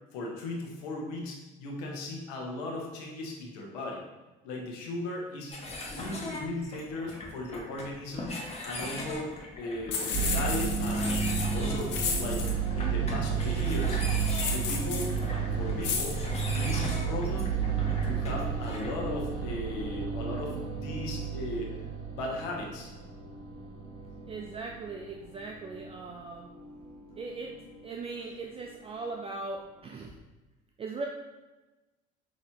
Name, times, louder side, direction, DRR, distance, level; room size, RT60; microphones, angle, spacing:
voice 1, 0.1-4.0 4.4-5.5 5.9-11.2 11.5-12.5 12.7-14.0 14.5-15.1 15.5-16.2 16.5-17.5 18.0-21.7 22.1-22.9, left 2 dB, 90° left, 0 dB, 1.1 m, -37 dB
sound 1, 5.5-19.0, left 1 dB, 30° left, 1.1 m, -40 dB
sound 2, 9.9-12.5 14.1-15.2 15.8-16.1, left 6 dB, 65° left, 0.8 m, -33 dB
sound 3, 10.1-28.4, right 6 dB, 50° right, 1.3 m, -32 dB
voice 2, 24.3-26.5 27.2-27.5 27.8-30.1 30.8-31.1, right 3 dB, 30° right, 1 dB, 0.5 m, -39 dB
5.8 x 3.1 x 2.8 m, 1.1 s
supercardioid pair, 85°, 20 cm